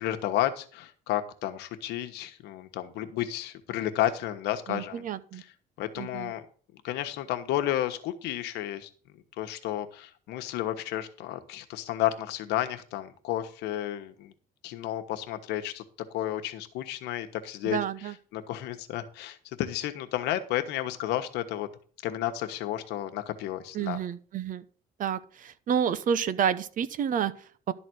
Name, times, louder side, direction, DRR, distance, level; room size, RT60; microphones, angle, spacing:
voice 1, 0.0-5.0 5.8-6.4 6.8-8.9 9.4-14.3 14.6-15.8 16.1-17.8 18.3-21.7 22.0-24.0, left 13 dB, 85° left, 7 dB, 1.3 m, -32 dB
voice 2, 4.7-5.4 6.0-6.3 17.6-18.1 23.7-24.6 25.0-27.7, right 8 dB, 55° right, 15 dB, 0.8 m, -30 dB
12.0 x 4.2 x 7.8 m, 0.42 s
cardioid pair, 110°, 17 cm